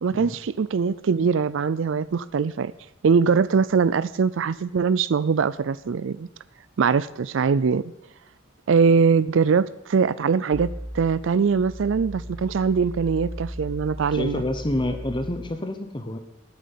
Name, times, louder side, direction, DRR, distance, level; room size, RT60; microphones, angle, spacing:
voice 1, 0.0-2.7 3.0-6.3 6.8-7.9 8.7-10.7 10.9-14.4, right 5 dB, 65° right, 16 dB, 0.4 m, -22 dB
sound 1, 10.5-15.5, equal, 55° left, 1.7 m, -37 dB
voice 2, 14.1-16.2, left 1 dB, 25° left, 8 dB, 0.9 m, -28 dB
13.5 x 7.6 x 9.6 m, 0.89 s
head